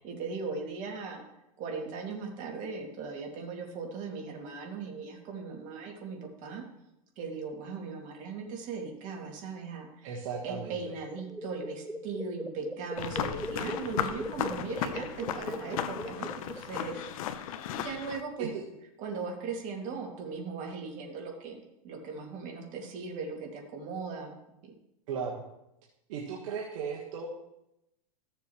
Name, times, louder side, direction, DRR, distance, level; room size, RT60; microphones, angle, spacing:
voice 1, 0.0-1.2 1.6-6.6 7.2-10.1 10.4-17.1 17.8-18.5 19.0-24.4, right 4 dB, 40° right, 0 dB, 2.5 m, -38 dB
voice 2, 10.0-10.7 18.4-18.6 25.1-25.4 26.1-27.3, right 6 dB, 60° right, -2 dB, 1.5 m, -36 dB
sound 1, 10.6-17.1, right 1 dB, ahead, 0.5 m, -41 dB
sound 2, 13.0-18.2, left 9 dB, 65° left, 0.8 m, -35 dB
14.5 x 6.9 x 3.1 m, 0.87 s
hypercardioid pair, 125°, 19 cm